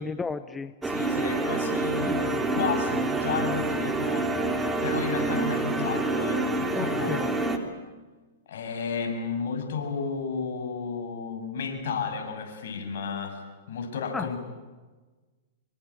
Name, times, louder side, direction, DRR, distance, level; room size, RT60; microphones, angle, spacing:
voice 1, 0.0-0.7 1.9-2.5 6.7-7.3 14.1-14.3, left 4 dB, 10° left, 12 dB, 1.0 m, -34 dB
sound 1, 0.8-7.6, right 2 dB, 10° right, 3.3 m, -27 dB
voice 2, 0.9-4.3 4.8-7.3 8.5-13.4 13.7-14.4, left 5 dB, 70° left, 4 dB, 7.4 m, -32 dB
27.0 x 24.5 x 8.8 m, 1.3 s
hypercardioid pair, 125°, 0 cm